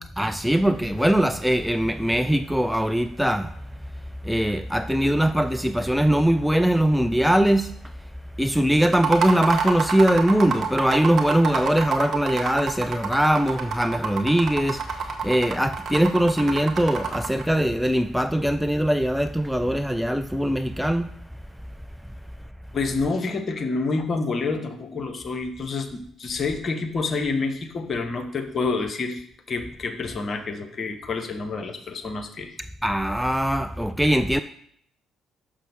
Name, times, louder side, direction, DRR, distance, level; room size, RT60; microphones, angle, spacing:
voice 1, 0.2-3.6 4.2-7.9 8.4-21.1 32.8-34.4, right 1 dB, ahead, 0.3 m, -21 dB
sound 1, 8.9-17.4, right 6 dB, 50° right, 1.1 m, -28 dB
voice 2, 22.7-29.2 29.5-32.6, left 4 dB, 40° left, 1.0 m, -28 dB
6.7 x 5.8 x 3.5 m
figure-of-eight pair, 45°, 0 cm